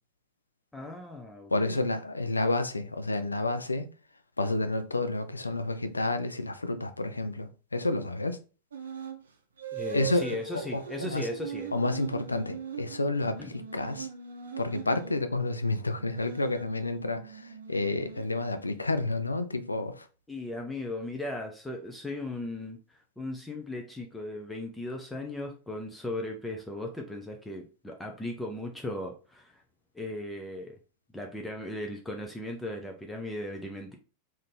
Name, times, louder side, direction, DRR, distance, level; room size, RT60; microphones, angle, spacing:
voice 1, 0.7-1.9 9.7-11.7 13.4-13.5 20.3-22.8 23.2-29.6 29.9-30.8 31.1-34.0, left 1 dB, 5° left, 0.6 m, -37 dB
voice 2, 1.5-3.9 4.4-8.4 9.9-11.3 11.7-14.1 14.6-20.1, left 2 dB, 80° left, 0.4 m, -30 dB
sound 1, 8.7-9.2 9.6-15.2 15.9-18.9, right 6 dB, 65° right, 0.6 m, -41 dB
3.7 x 2.7 x 3.6 m
figure-of-eight pair, 90°, 0 cm